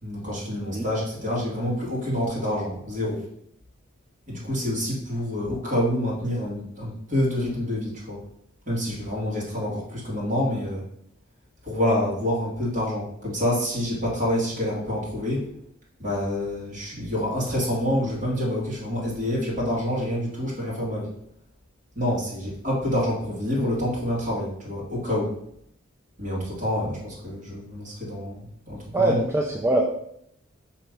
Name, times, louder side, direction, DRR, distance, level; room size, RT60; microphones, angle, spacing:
voice 1, 0.0-3.2 4.3-8.2 8.7-10.8 11.6-15.5 16.0-21.1 22.0-25.4 26.2-29.2, left 1 dB, 40° right, -5 dB, 2.4 m, -27 dB
voice 2, 28.9-29.9, right 1 dB, 15° right, 0 dB, 0.5 m, -22 dB
5.7 x 3.3 x 5.3 m, 0.71 s
head